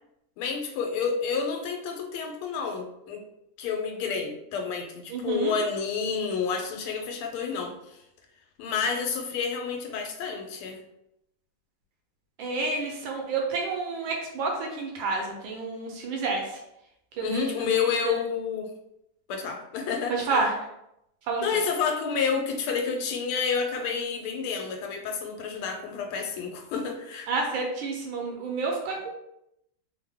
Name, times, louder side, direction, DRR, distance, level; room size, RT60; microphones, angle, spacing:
voice 1, 0.4-3.2 3.6-8.0 8.6-10.8 17.2-18.7 19.3-20.5 21.4-27.3, left 6 dB, 80° left, 3 dB, 1.4 m, -29 dB
voice 2, 5.1-5.5 12.4-16.6 17.1-17.5 17.8-18.2 20.1-20.5 21.3-21.4 27.3-29.1, right 4 dB, 75° right, 0 dB, 1.3 m, -29 dB
3.4 x 2.1 x 3.4 m, 0.82 s
omnidirectional pair, 2.4 m